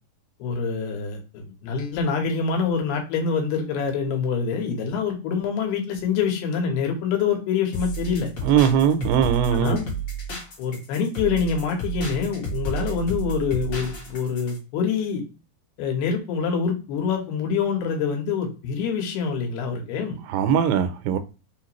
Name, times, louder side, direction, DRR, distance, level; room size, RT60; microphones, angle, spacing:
voice 1, 0.4-8.3 9.5-9.9 10.6-15.2 15.8-20.2, left 6 dB, 80° left, 3.0 m, -25 dB
sound 1, 7.7-14.6, right 4 dB, 50° left, 1.7 m, -31 dB
voice 2, 8.4-9.8 20.3-21.2, right 8 dB, 90° right, 2.6 m, -20 dB
6.3 x 2.5 x 3.0 m
omnidirectional pair, 4.5 m